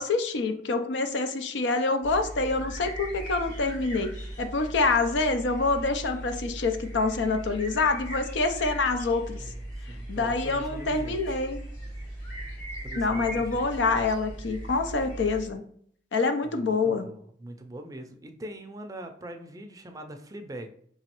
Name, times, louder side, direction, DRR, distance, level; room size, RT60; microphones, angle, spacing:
voice 1, 0.0-4.1 4.4-9.4 10.1-11.6 13.0-15.6 16.1-17.1, left 3 dB, 85° left, 8 dB, 0.5 m, -26 dB
sound 1, 2.0-15.5, right 1 dB, 45° left, 1.8 m, -39 dB
voice 2, 9.9-11.2 12.8-13.7 16.4-20.7, right 1 dB, 20° right, 5 dB, 0.4 m, -42 dB
4.6 x 3.0 x 2.9 m, 0.63 s
head